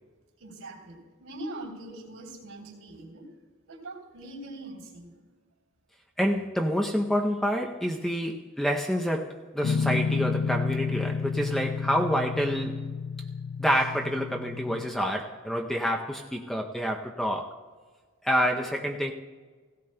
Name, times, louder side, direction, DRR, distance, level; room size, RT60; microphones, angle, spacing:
voice 1, 0.4-3.2 3.7-5.1, right 1 dB, 75° right, 3.1 m, -42 dB
voice 2, 6.2-12.8 13.6-17.6 18.2-19.1, equal, ahead, 0.5 m, -28 dB
Guitar, 9.6-14.9, left 5 dB, 65° left, 0.4 m, -30 dB
17.0 x 16.5 x 2.2 m
head